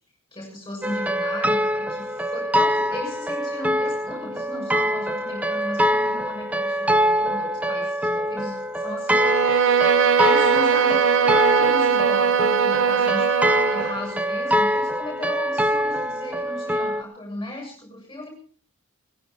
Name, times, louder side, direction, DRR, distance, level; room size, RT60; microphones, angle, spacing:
voice 1, 0.3-9.4 10.2-13.3 13.7-18.3, left 1 dB, 15° left, 1 dB, 6.6 m, -36 dB
sound 1, 0.8-17.0, equal, 5° right, 0.6 m, -24 dB
Bowed string instrument, 9.1-14.0, right 7 dB, 60° right, 0.8 m, -20 dB
18.5 x 16.0 x 4.1 m, 0.43 s
head